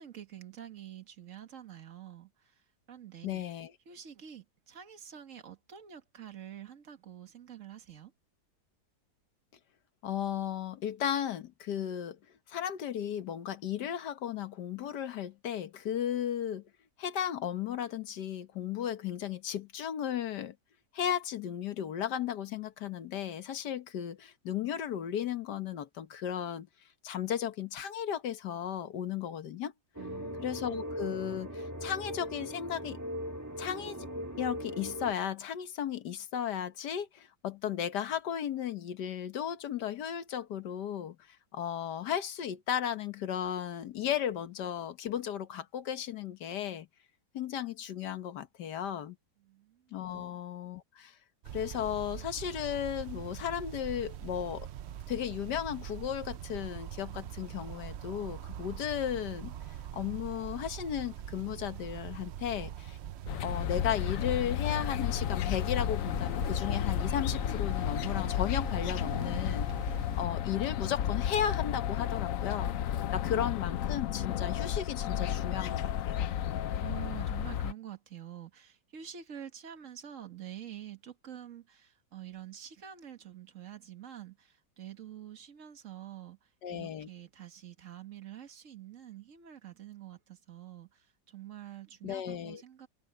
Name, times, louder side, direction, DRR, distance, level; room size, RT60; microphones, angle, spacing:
voice 1, 0.0-2.6 2.9-3.4 3.9-8.1 30.0-30.5 49.4-50.3 73.3-73.5 76.8-92.9, right 10 dB, 50° right, 1.9 m, -47 dB
voice 2, 3.2-3.7 10.0-12.2 12.5-16.6 17.0-20.6 20.9-26.7 27.0-29.7 30.4-33.0 33.6-34.1 34.4-41.2 41.5-46.9 47.3-49.2 49.9-51.1 51.5-54.7 55.1-59.5 59.9-63.0 63.4-72.7 73.1-76.3 86.6-87.1 92.0-92.6, left 9 dB, 80° left, 1.7 m, -35 dB
sound 1, 29.9-35.1, equal, 10° right, 2.2 m, -39 dB
sound 2, 51.4-70.2, right 10 dB, 75° right, 0.6 m, -43 dB
sound 3, 63.3-77.7, left 10 dB, 60° left, 1.0 m, -32 dB
omnidirectional pair, 1.8 m